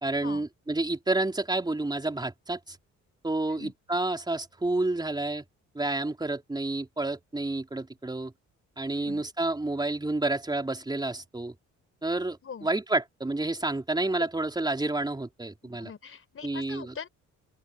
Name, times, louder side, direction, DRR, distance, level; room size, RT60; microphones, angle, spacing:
voice 1, 0.0-2.8 3.2-5.4 5.8-8.3 8.8-11.5 12.0-15.9 16.4-17.0, right 2 dB, 15° right, 3.6 m, -29 dB
voice 2, 8.9-9.2 12.4-12.7 14.2-14.3 15.6-17.1, left 6 dB, 45° left, 4.4 m, -42 dB
open air
cardioid pair, 90°, 30 cm